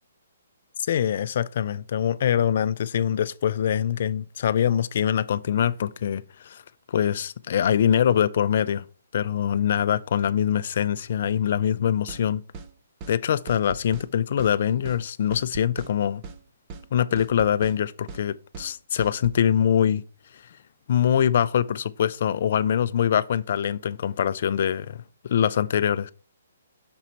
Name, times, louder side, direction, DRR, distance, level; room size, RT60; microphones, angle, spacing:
voice 1, 0.9-6.6 6.9-8.8 9.1-12.4 13.1-16.2 16.9-20.0 20.9-26.1, left 9 dB, 45° left, 0.3 m, -24 dB
sound 1, 12.1-12.2 12.5-12.7 13.0-13.2 13.5-14.1 14.4-14.5 14.8-15.0 15.3-15.9 16.2-16.4 16.7-16.9 17.2-17.8 18.1-18.2 18.5-18.7 19.0-19.4, right 4 dB, 20° right, 0.4 m, -39 dB
6.1 x 4.1 x 4.4 m
hypercardioid pair, 175°, 0 cm